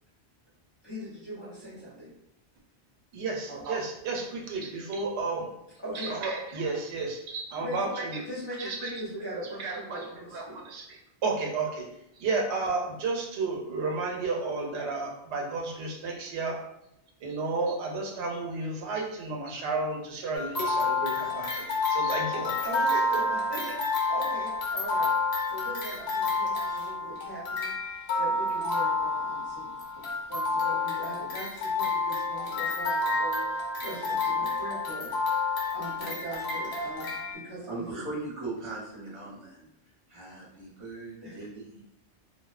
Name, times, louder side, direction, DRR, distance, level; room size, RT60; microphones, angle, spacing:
voice 1, 0.8-2.1 3.5-3.6 5.8-6.1 7.6-7.9 8.3-10.6 22.6-25.1 25.5-35.1 35.7-38.0 41.2-41.4, right 1 dB, 30° left, -9 dB, 0.6 m, -40 dB
voice 2, 3.1-5.5 5.9-8.2 8.6-9.0 9.4-10.0 10.3-11.9 12.1-16.6 17.2-22.6 22.9-23.0, right 3 dB, 80° right, 0 dB, 0.9 m, -32 dB
sound 1, 20.3-37.3, left 3 dB, 75° left, 0.8 m, -29 dB
voice 3, 37.7-39.6 40.1-41.8, right 2 dB, 35° right, -5 dB, 0.7 m, -39 dB
2.6 x 2.0 x 2.3 m, 0.83 s
omnidirectional pair, 1.1 m